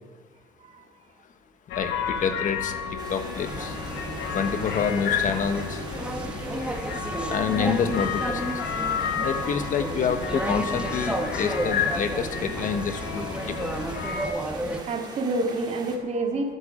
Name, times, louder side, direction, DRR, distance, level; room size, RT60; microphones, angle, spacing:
sound 1, 1.7-14.3, left 7 dB, 80° left, 1.4 m, -31 dB
voice 1, 1.7-2.7 3.1-3.7 4.3-5.8 7.3-8.4 9.2-13.6, left 6 dB, 50° left, 8 dB, 1.3 m, -27 dB
sound 2, 3.0-16.0, right 3 dB, 25° right, 2.4 m, -42 dB
sound 3, 3.4-14.8, right 1 dB, 5° right, 1.3 m, -32 dB
voice 2, 14.9-16.5, right 2 dB, 45° right, 1 dB, 2.0 m, -28 dB
12.0 x 11.0 x 5.1 m, 1.5 s
cardioid pair, 110°, 17 cm